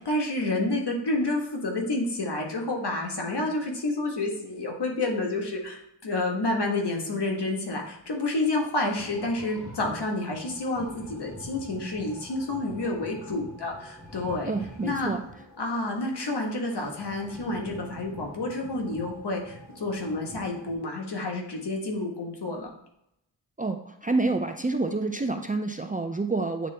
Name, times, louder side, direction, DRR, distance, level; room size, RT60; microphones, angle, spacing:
voice 1, 0.0-14.5 14.8-15.1 15.6-22.7, left 2 dB, 60° left, 1 dB, 1.5 m, -29 dB
sound 1, 9.0-20.7, equal, ahead, 2.2 m, -46 dB
voice 2, 14.4-15.2 23.6-26.7, right 3 dB, 20° right, 5 dB, 0.4 m, -28 dB
8.9 x 3.8 x 3.4 m, 0.78 s
wide cardioid pair, 75°, 45 cm